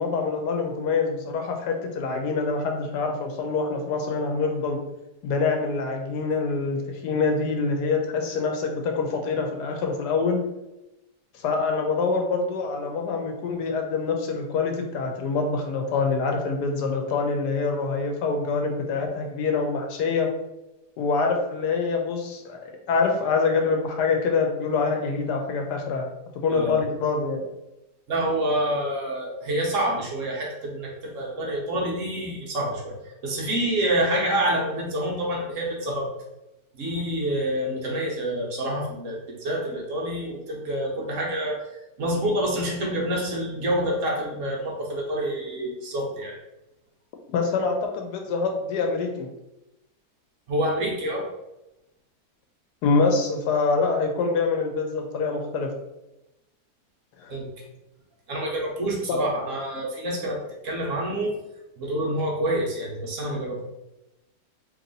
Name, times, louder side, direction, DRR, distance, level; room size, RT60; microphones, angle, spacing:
voice 1, 0.0-4.8 5.2-10.4 11.3-20.3 21.0-26.1 26.4-27.4 47.3-49.3 52.8-55.7 57.2-57.3 59.1-59.2, left 4 dB, 85° left, 3 dB, 1.3 m, -25 dB
voice 2, 26.5-26.8 28.1-36.1 36.7-46.4 50.5-51.3 57.3-57.5 58.3-61.4 61.8-63.7, right 1 dB, 60° right, -1 dB, 1.0 m, -27 dB
3.1 x 2.9 x 3.9 m, 0.94 s
omnidirectional pair, 1.7 m